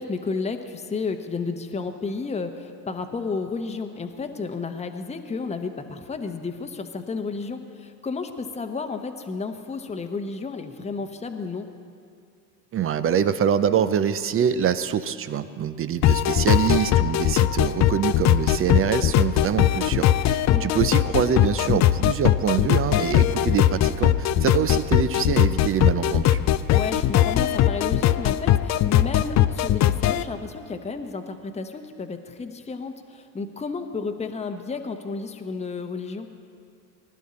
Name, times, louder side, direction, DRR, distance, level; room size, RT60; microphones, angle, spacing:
voice 1, 0.0-11.7 20.5-20.8 26.7-36.3, left 4 dB, 15° left, 6 dB, 1.0 m, -32 dB
voice 2, 12.7-26.4, right 8 dB, 30° right, 12 dB, 0.5 m, -25 dB
sound 1, 16.0-30.2, left 12 dB, 35° left, 0.5 m, -20 dB
20.0 x 11.5 x 4.3 m, 2.3 s
hypercardioid pair, 75°, 50 cm